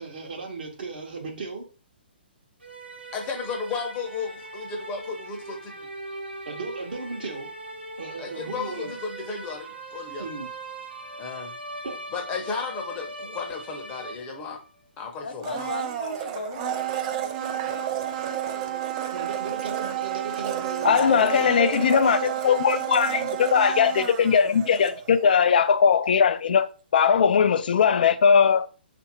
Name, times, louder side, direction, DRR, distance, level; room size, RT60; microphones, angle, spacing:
voice 1, 0.0-1.6 6.5-7.5 8.0-8.9 10.2-10.5 11.8-12.0 19.1-21.6, right 4 dB, 60° right, 0.8 m, -35 dB
sound 1, 2.6-14.7, right 2 dB, 80° right, 0.9 m, -40 dB
voice 2, 3.1-5.9 8.2-10.3 11.2-11.5 12.1-14.6 15.0-15.7, left 5 dB, 20° left, 0.7 m, -34 dB
voice 3, 15.2-18.9, left 3 dB, 75° left, 0.9 m, -38 dB
Domestic sounds home sounds, 15.4-25.4 25.7-25.8, right 11 dB, 30° right, 0.4 m, -30 dB
voice 4, 20.8-28.7, left 7 dB, 60° left, 0.4 m, -20 dB
4.0 x 2.5 x 2.7 m
figure-of-eight pair, 130°, 6 cm